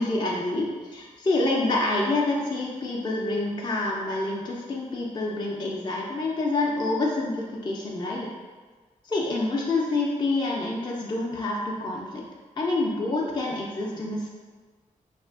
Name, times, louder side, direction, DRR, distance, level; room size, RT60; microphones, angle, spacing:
voice 1, 0.0-8.3 9.0-12.2 12.6-14.3, left 2 dB, 30° left, -3 dB, 0.4 m, -27 dB
4.3 x 2.4 x 2.3 m, 1.4 s
wide cardioid pair, 100°, 14 cm